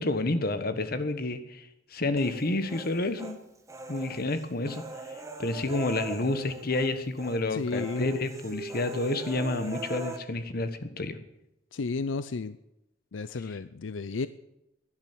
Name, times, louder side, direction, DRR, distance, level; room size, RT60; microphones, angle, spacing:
voice 1, 0.0-3.4 3.9-4.8 5.4-11.2, left 2 dB, 50° left, 10 dB, 1.3 m, -29 dB
Human voice, 2.2-3.4 3.7-6.9 7.2-7.4 7.7-10.2, right 2 dB, 15° right, 1.5 m, -40 dB
voice 2, 7.5-8.1 11.7-12.6 13.1-14.3, left 4 dB, 85° left, 14 dB, 0.5 m, -32 dB
12.0 x 10.5 x 9.3 m, 0.87 s
head